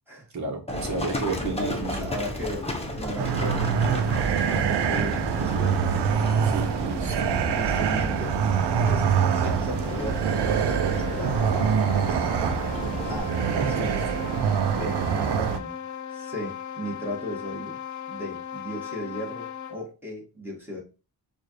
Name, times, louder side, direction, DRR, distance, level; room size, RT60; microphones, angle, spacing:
voice 1, 0.3-2.1 6.4-7.1 13.6-14.0, right 3 dB, 45° right, 1 dB, 1.2 m, -31 dB
Livestock farm animals working animals, 0.7-13.2, left 1 dB, 15° left, 0.9 m, -33 dB
voice 2, 1.3-6.0 7.5-8.4 8.9-12.3 13.1-14.1 14.7-15.8 16.1-17.8 18.1-20.8, equal, 5° right, -4 dB, 1.9 m, -36 dB
sound 1, 3.2-15.6, right 7 dB, 80° right, 0.6 m, -25 dB
sound 2, 9.6-19.9, left 9 dB, 45° left, 0.6 m, -38 dB
6.6 x 2.6 x 3.1 m, 0.33 s
wide cardioid pair, 115°, 40 cm